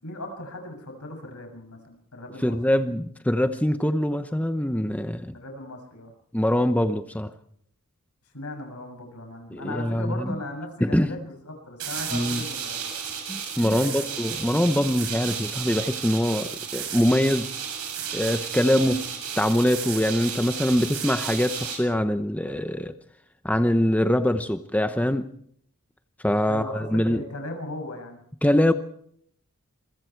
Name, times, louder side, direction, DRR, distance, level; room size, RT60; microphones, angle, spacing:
voice 1, 0.0-2.6 5.3-6.1 8.3-12.9 13.7-14.1 18.6-19.0 26.4-28.2, left 1 dB, 80° left, 5 dB, 7.2 m, -38 dB
voice 2, 2.4-5.4 6.3-7.3 9.5-10.4 10.8-11.1 12.1-12.4 13.3-17.5 18.1-19.0 19.4-22.9 23.4-25.3 26.2-27.2 28.4-28.7, left 1 dB, 5° left, 9 dB, 0.8 m, -23 dB
sound 1, 11.8-21.8, right 7 dB, 85° right, 7.7 m, -33 dB
27.5 x 23.5 x 4.6 m, 0.67 s
head